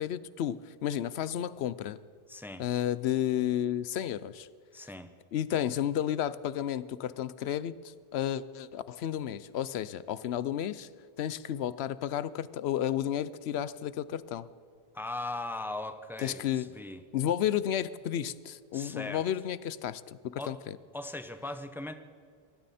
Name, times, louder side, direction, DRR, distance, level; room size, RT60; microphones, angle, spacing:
voice 1, 0.0-2.0 2.6-4.5 5.3-10.9 11.2-14.5 16.2-16.7 17.1-20.8, left 10 dB, 85° left, 17 dB, 0.9 m, -32 dB
voice 2, 2.3-2.6 4.7-5.1 14.9-17.0 18.7-19.2 20.4-20.6 20.9-21.9, left 2 dB, ahead, 8 dB, 0.7 m, -39 dB
23.0 x 13.0 x 4.2 m, 2.1 s
omnidirectional pair, 1.0 m